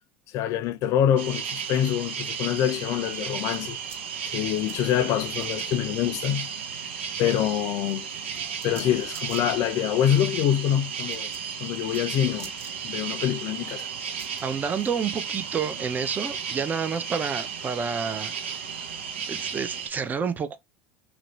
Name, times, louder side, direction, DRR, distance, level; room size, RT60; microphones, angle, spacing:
voice 1, 0.3-3.8 4.3-6.5 7.2-8.1 8.4-11.3 11.6-12.5 12.8-13.9, left 10 dB, 55° left, 0.4 m, -25 dB
sound 1, 1.2-19.9, right 7 dB, 85° right, 0.7 m, -34 dB
sound 2, 3.2-6.9 7.2-16.1, right 6 dB, 45° right, 1.1 m, -49 dB
voice 2, 14.4-18.3 19.2-20.6, right 6 dB, 30° right, 0.5 m, -29 dB
2.5 x 2.2 x 3.0 m
hypercardioid pair, 80°, 6 cm